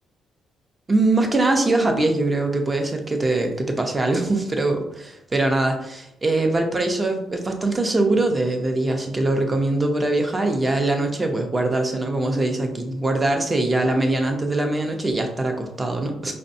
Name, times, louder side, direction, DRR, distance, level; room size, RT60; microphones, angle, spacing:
voice 1, 0.9-16.4, right 2 dB, 25° right, 3 dB, 0.6 m, -22 dB
5.1 x 2.2 x 2.7 m, 0.81 s
cardioid pair, 90°, 0 cm